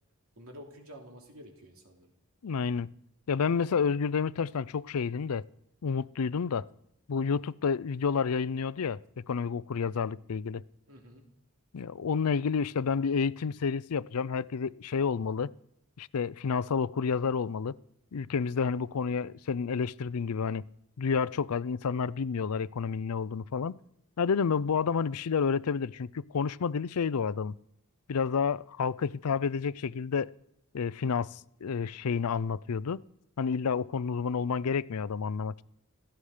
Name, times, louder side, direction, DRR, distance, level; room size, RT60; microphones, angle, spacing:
voice 1, 0.3-2.1 10.9-11.2, equal, 75° right, 2.9 m, -49 dB
voice 2, 2.4-2.9 3.3-5.5 5.8-6.7 7.1-9.0 9.3-10.6 11.7-15.5 16.0-17.7 18.1-20.6 21.0-23.7 24.2-27.5 28.1-30.3 30.7-33.0 33.4-35.6, left 5 dB, 85° left, 0.5 m, -30 dB
16.5 x 14.5 x 5.0 m
head